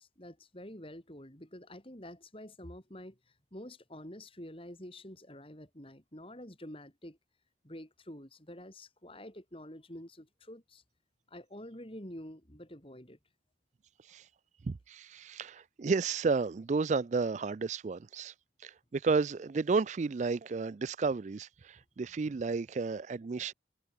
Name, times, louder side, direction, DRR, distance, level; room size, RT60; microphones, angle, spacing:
voice 1, 0.0-7.2 7.6-10.8 11.3-13.2, left 1 dB, 30° left, 4.3 m, -48 dB
voice 2, 14.6-18.3 18.6-23.5, right 4 dB, 40° right, 0.4 m, -32 dB
head